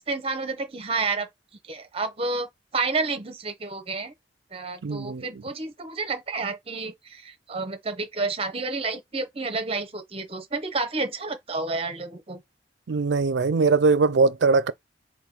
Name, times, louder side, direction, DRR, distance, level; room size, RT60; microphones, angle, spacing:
voice 1, 0.1-1.3 1.7-2.5 2.7-4.1 4.5-12.4, right 3 dB, 35° right, 0.8 m, -30 dB
voice 2, 4.8-5.3 12.9-14.7, right 4 dB, 85° right, 0.5 m, -21 dB
4.4 x 2.3 x 3.6 m
head